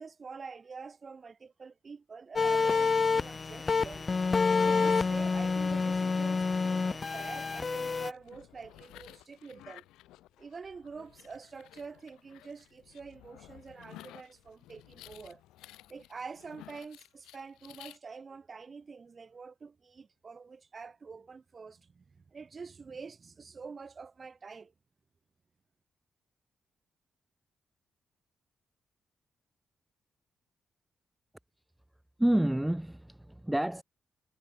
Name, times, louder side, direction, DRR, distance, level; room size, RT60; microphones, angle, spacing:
voice 1, 0.0-4.1 4.6-9.8 10.4-15.4 15.9-24.7, right 5 dB, 45° right, 7.9 m, -46 dB
sound 1, 2.4-8.1, left 4 dB, 40° left, 0.3 m, -28 dB
sound 2, 7.8-18.0, left 15 dB, 85° left, 7.4 m, -54 dB
voice 2, 32.2-33.8, right 1 dB, 10° right, 2.7 m, -28 dB
supercardioid pair, 50°, 0 cm